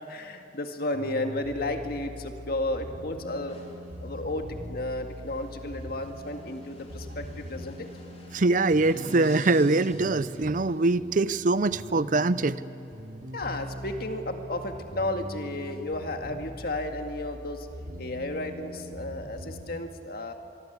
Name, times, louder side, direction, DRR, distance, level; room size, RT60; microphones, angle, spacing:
voice 1, 0.0-3.6 4.0-7.9 13.3-17.7 18.0-20.3, left 2 dB, 55° left, 5 dB, 2.0 m, -33 dB
sound 1, 0.9-19.6, equal, 70° right, 3.7 m, -42 dB
sound 2, 3.5-11.1, left 2 dB, 35° left, 3.6 m, -52 dB
voice 2, 8.3-12.6, right 3 dB, 45° right, 16 dB, 0.6 m, -23 dB
25.0 x 24.0 x 8.2 m, 2.9 s
head